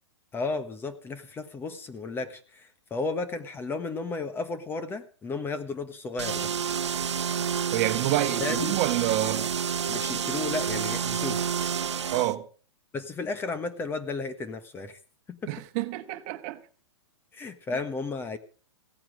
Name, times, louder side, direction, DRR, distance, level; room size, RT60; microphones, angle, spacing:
voice 1, 0.3-6.5 8.4-8.8 9.9-11.4 12.9-15.0 15.3-15.5 17.3-18.4, left 3 dB, 15° left, 1.3 m, -33 dB
sound 1, 6.2-12.3, right 7 dB, 90° right, 0.9 m, -29 dB
voice 2, 7.7-9.5 12.1-12.5 15.5-16.6, right 15 dB, 40° right, 1.4 m, -28 dB
16.5 x 9.0 x 6.2 m
hypercardioid pair, 130°, 14 cm